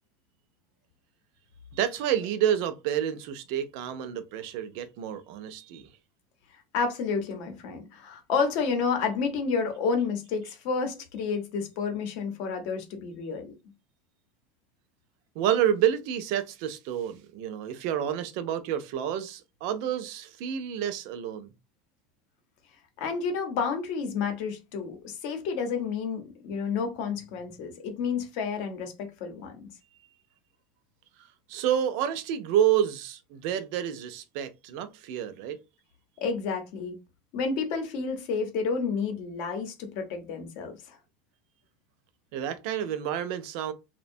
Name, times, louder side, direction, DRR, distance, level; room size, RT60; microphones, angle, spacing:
voice 1, 1.7-5.9 15.4-21.5 31.5-35.6 42.3-43.7, right 10 dB, 60° right, 0.4 m, -29 dB
voice 2, 6.7-13.5 23.0-29.6 36.2-37.0 37.3-41.0, left 5 dB, 55° left, 0.7 m, -30 dB
2.7 x 2.1 x 2.6 m
supercardioid pair, 155°, 3 cm